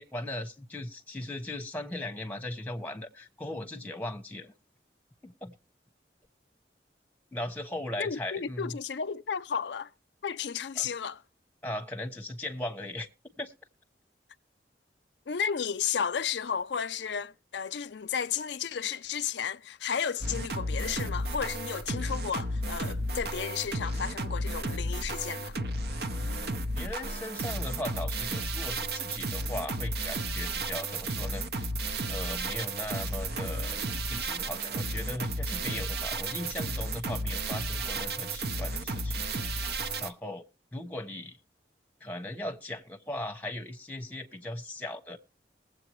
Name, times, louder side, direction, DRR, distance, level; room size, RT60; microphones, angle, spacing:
voice 1, 0.0-4.5 5.2-5.5 7.3-8.8 10.8-10.9 11.6-13.1 13.4-13.5 20.3-20.4 26.7-31.6 32.1-33.8 34.1-40.4 40.7-41.4 42.0-45.2, left 1 dB, 10° left, 1.1 m, -38 dB
voice 2, 8.0-9.9 10.2-11.2 15.3-25.6, left 7 dB, 80° left, 0.5 m, -33 dB
sound 1, 20.2-40.1, right 2 dB, 65° right, 0.9 m, -33 dB
20.5 x 8.0 x 3.1 m
head